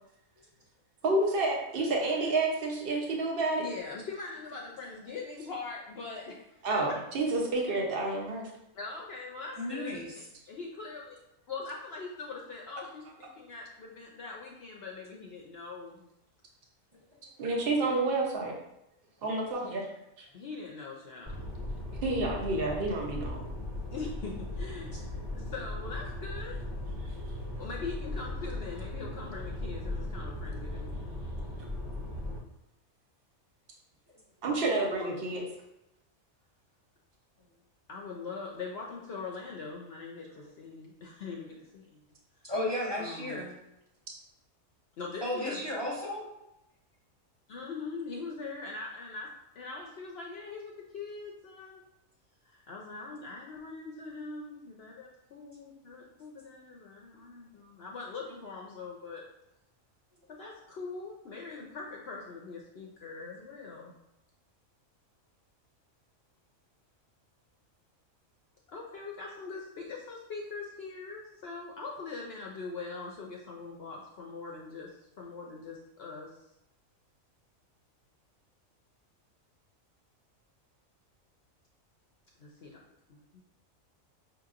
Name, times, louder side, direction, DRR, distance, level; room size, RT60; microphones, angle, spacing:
voice 1, 1.0-3.6 6.6-8.5 17.4-18.5 19.2-19.9 22.0-23.4 34.4-35.4, right 2 dB, 50° right, -1 dB, 0.9 m, -29 dB
voice 2, 3.6-6.7 8.7-10.1 10.5-11.2 11.5-16.1 19.6-19.8 20.3-21.4 23.9-26.6 27.6-31.1 34.8-35.1 37.9-42.1 43.0-43.5 45.0-45.6 47.5-49.3 49.6-51.8 52.4-59.2 60.3-63.9 68.7-76.3 82.4-82.8 83.1-83.4, left 4 dB, 60° left, -1 dB, 0.7 m, -42 dB
voice 3, 9.6-10.1 42.4-43.6 45.2-46.3, left 1 dB, 20° right, -5 dB, 0.8 m, -33 dB
sound 1, 21.3-32.4, left 1 dB, ahead, 1.3 m, -38 dB
5.6 x 2.9 x 2.4 m, 0.86 s
omnidirectional pair, 1.4 m